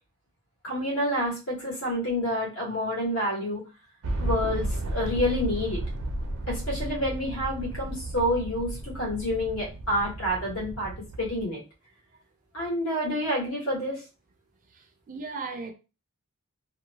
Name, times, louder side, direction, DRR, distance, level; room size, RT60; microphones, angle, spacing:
voice 1, 0.6-3.6 4.2-5.8 6.5-11.6 12.5-14.0, equal, 70° left, 1.3 m, -28 dB
sound 1, 4.0-11.4, right 1 dB, 85° right, 0.6 m, -33 dB
voice 2, 14.7-15.7, right 4 dB, 40° right, 0.4 m, -37 dB
2.8 x 2.1 x 2.7 m
head